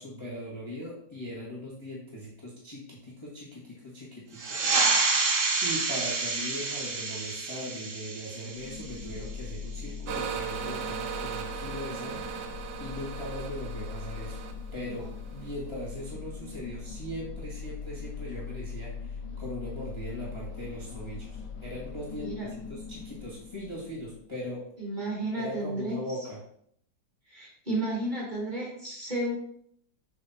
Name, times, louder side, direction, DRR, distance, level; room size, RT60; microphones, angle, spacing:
voice 1, 0.0-5.1 5.6-12.2 12.8-14.4 14.7-15.1 15.3-24.6 25.3-26.4, equal, 15° left, -6 dB, 1.6 m, -39 dB
sound 1, 4.3-9.5, right 3 dB, 50° right, 1.1 m, -28 dB
sound 2, 8.6-24.5, left 5 dB, 70° left, 0.8 m, -41 dB
sound 3, 10.1-15.5, right 8 dB, 75° right, 1.3 m, -38 dB
voice 2, 24.8-26.2 27.3-29.3, right 1 dB, 25° right, -4 dB, 2.0 m, -32 dB
7.2 x 3.7 x 4.1 m, 0.66 s
omnidirectional pair, 2.0 m